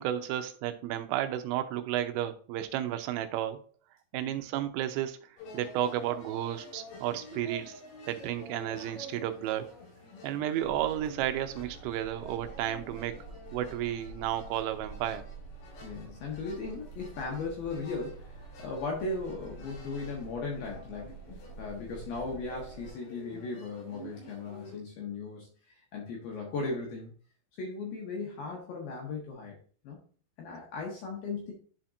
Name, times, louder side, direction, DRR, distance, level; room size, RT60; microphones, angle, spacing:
voice 1, 0.0-3.6 4.1-7.8 8.1-9.7 10.2-13.2 13.5-15.2, right 12 dB, 90° right, 8 dB, 3.3 m, -32 dB
sound 1, 5.4-24.8, left 1 dB, 85° left, 5.8 m, -50 dB
sound 2, 10.6-22.9, right 3 dB, 20° left, 1.3 m, -48 dB
voice 2, 15.8-21.2 21.6-25.5 25.9-27.1 27.6-29.6 29.8-30.0 30.4-31.5, left 3 dB, 65° left, -1 dB, 2.4 m, -37 dB
11.0 x 4.3 x 2.5 m, 0.43 s
omnidirectional pair, 5.8 m